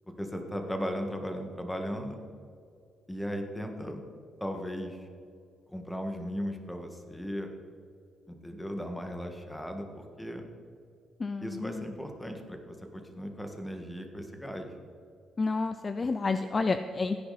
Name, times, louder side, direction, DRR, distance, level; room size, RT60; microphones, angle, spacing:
voice 1, 0.2-2.2 3.1-4.0 4.4-5.1 5.7-7.5 8.3-10.5 11.4-14.7, equal, 5° left, 4 dB, 2.0 m, -37 dB
voice 2, 11.2-11.9 15.4-17.2, left 3 dB, 30° left, 10 dB, 0.5 m, -30 dB
16.0 x 10.0 x 4.3 m, 2.4 s
cardioid pair, 90°, 0 cm